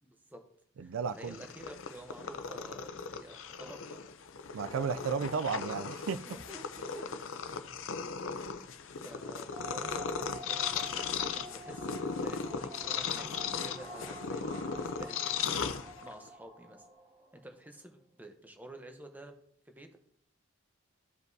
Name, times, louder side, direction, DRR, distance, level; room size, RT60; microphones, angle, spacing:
voice 1, 0.0-0.4 0.8-4.1 6.2-7.2 7.9-8.1 8.5-8.7 9.0-13.3 13.6-15.5 15.8-16.9 17.4-19.3 19.7-20.0, right 1 dB, 10° right, 0.8 m, -50 dB
voice 2, 0.8-1.4 4.5-6.2, right 6 dB, 80° right, 0.4 m, -33 dB
Purr, 1.1-16.3, left 6 dB, 75° left, 0.6 m, -37 dB
sound 1, 9.5-17.6, equal, 30° right, 1.6 m, -47 dB
14.0 x 5.2 x 2.7 m
head